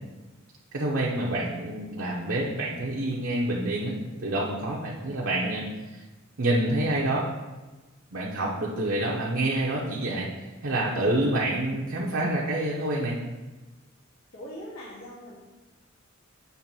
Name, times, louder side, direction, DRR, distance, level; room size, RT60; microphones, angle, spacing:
voice 1, 0.7-5.7 5.9-6.0 6.4-7.3 8.1-10.3 10.6-13.2, right 1 dB, 65° right, -4 dB, 0.9 m, -27 dB
voice 2, 14.3-15.3, equal, 80° left, -8 dB, 2.3 m, -42 dB
7.0 x 3.3 x 6.1 m, 1.2 s
head